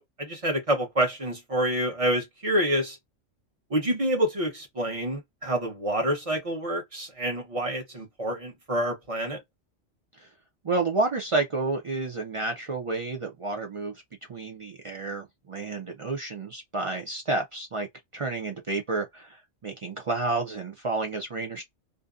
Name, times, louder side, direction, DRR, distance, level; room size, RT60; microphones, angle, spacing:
voice 1, 0.0-3.0 3.7-9.4, right 1 dB, 30° right, 0.9 m, -27 dB
voice 2, 10.6-13.9 14.3-17.9 18.1-21.6, right 3 dB, 55° right, 0.3 m, -30 dB
2.6 x 2.2 x 2.3 m
omnidirectional pair, 1.3 m